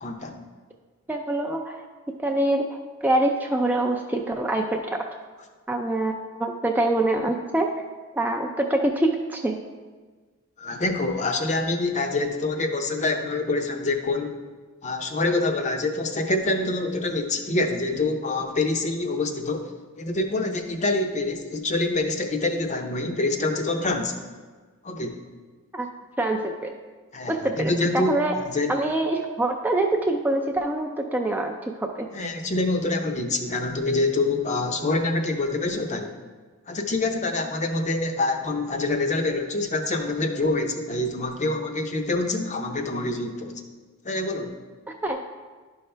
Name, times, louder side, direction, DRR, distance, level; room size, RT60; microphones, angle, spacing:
voice 1, 0.0-0.4 10.6-14.4 14.8-19.7 20.0-24.2 24.8-25.2 27.1-28.7 32.1-36.1 36.7-43.5 44.0-44.6, left 2 dB, 30° left, 5 dB, 0.6 m, -26 dB
voice 2, 1.1-1.9 2.2-5.1 5.7-7.7 8.1-9.6 25.7-25.9 26.2-26.7 27.3-28.4 28.7-32.1 45.0-45.2, right 1 dB, 10° right, 2 dB, 0.3 m, -25 dB
11.0 x 5.5 x 3.3 m, 1.4 s
head